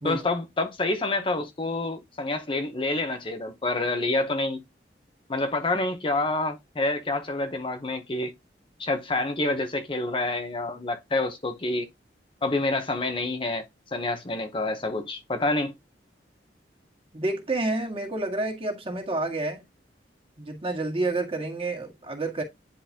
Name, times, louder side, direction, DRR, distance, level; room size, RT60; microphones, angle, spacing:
voice 1, 0.0-4.6 5.3-8.3 8.8-11.9 12.4-13.6 13.9-15.7, left 2 dB, 30° left, 0.8 m, -27 dB
voice 2, 17.1-19.6 20.4-22.4, right 2 dB, 35° right, 1.9 m, -29 dB
10.0 x 3.9 x 2.8 m
head